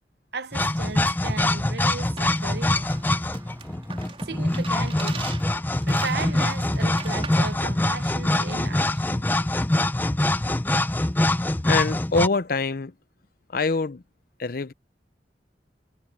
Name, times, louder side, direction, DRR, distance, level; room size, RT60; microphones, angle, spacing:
voice 1, 0.3-2.8 4.2-5.3 5.8-9.3, right 4 dB, 65° right, 0.8 m, -35 dB
sound 1, 0.5-12.3, left 1 dB, 10° left, 0.4 m, -24 dB
sound 2, 2.2-7.5, right 5 dB, 35° right, 3.7 m, -41 dB
Engine, 2.5-8.5, right 1 dB, 15° right, 7.6 m, -54 dB
voice 2, 11.7-12.9 13.5-14.0 14.4-14.7, left 3 dB, 55° left, 0.6 m, -24 dB
head